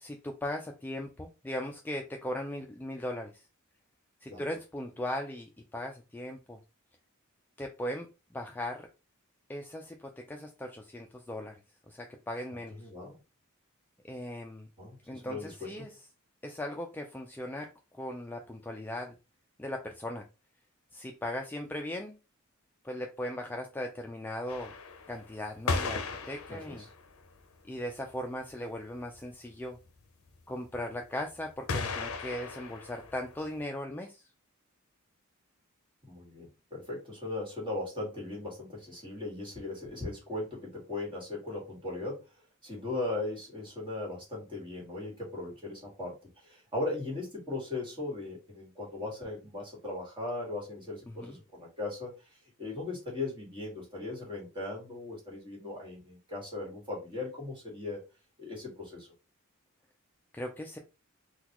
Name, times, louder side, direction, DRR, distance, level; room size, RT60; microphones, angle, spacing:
voice 1, 0.0-3.5 4.2-6.6 7.6-8.1 8.3-8.9 9.5-11.5 11.9-12.8 14.1-14.7 15.1-15.9 16.4-19.1 19.6-20.2 20.9-22.2 22.8-24.7 25.1-26.8 27.7-29.8 30.5-34.2 51.1-51.4 60.3-60.8, left 1 dB, 10° left, 2 dB, 0.3 m, -38 dB
voice 2, 12.8-13.2 14.8-15.8 26.5-26.9 36.0-42.3 42.6-52.1 52.6-58.0 58.4-59.1, left 2 dB, 25° right, -3 dB, 1.6 m, -38 dB
sound 1, 24.5-27.3 27.9-28.0 28.2-28.3 28.5-28.6 28.9-29.3 31.7-33.6, left 4 dB, 75° left, 0.5 m, -36 dB
3.8 x 2.3 x 2.9 m, 0.29 s
head